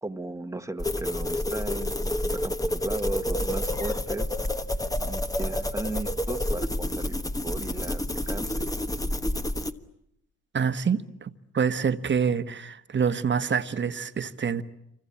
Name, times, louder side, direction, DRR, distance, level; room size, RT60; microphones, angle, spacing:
voice 1, 0.0-4.3 5.1-8.6, right 2 dB, 10° right, 1.4 m, -36 dB
sound 1, 0.8-9.7, left 1 dB, 10° left, 1.3 m, -29 dB
voice 2, 10.5-14.6, right 6 dB, 40° right, 1.4 m, -26 dB
27.5 x 25.0 x 8.6 m
cardioid pair, 90°, 30 cm